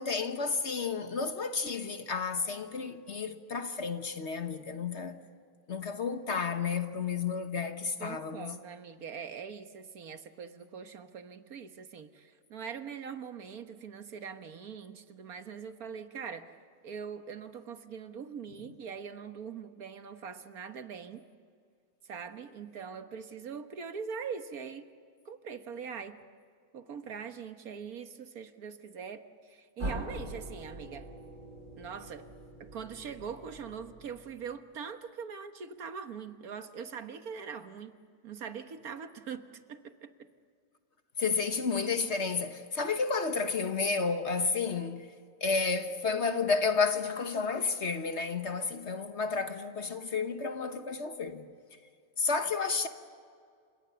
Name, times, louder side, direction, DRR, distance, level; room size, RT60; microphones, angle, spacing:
voice 1, 0.0-5.2 5.7-8.5 41.2-45.1 45.4-51.5 52.2-52.9, left 4 dB, 50° left, 1.5 m, -31 dB
voice 2, 8.0-16.5 16.8-21.2 22.0-24.8 25.2-26.2 26.7-31.1 31.8-32.3 32.6-37.9 38.2-40.3, right 6 dB, 90° right, 1.8 m, -42 dB
sound 1, 29.8-34.5, right 1 dB, 65° right, 5.6 m, -42 dB
30.0 x 27.0 x 7.0 m
omnidirectional pair, 1.5 m